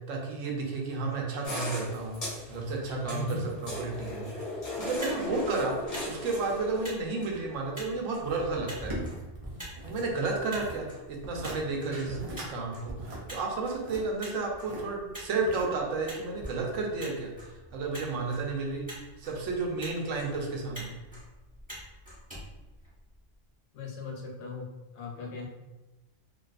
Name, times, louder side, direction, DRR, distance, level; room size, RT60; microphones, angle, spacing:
voice 1, 0.1-5.8 6.0-9.0 9.8-20.9, right 3 dB, 85° right, 0 dB, 0.9 m, -32 dB
sound 1, 1.4-6.9, left 2 dB, 40° left, 0.6 m, -37 dB
voice 2, 3.1-3.4 11.8-12.3 23.7-24.7 24.9-25.5, left 4 dB, 70° left, 0 dB, 0.8 m, -38 dB
Motor vehicle (road), 4.8-23.3, equal, 5° right, 0.9 m, -47 dB
sound 2, 8.2-10.1 10.3-10.8 11.2-11.6 11.9-12.5 12.8-14.8 15.4-16.0 16.4-16.5, right 1 dB, 55° right, 0.4 m, -40 dB
2.4 x 2.3 x 2.3 m, 1.1 s
omnidirectional pair, 1.3 m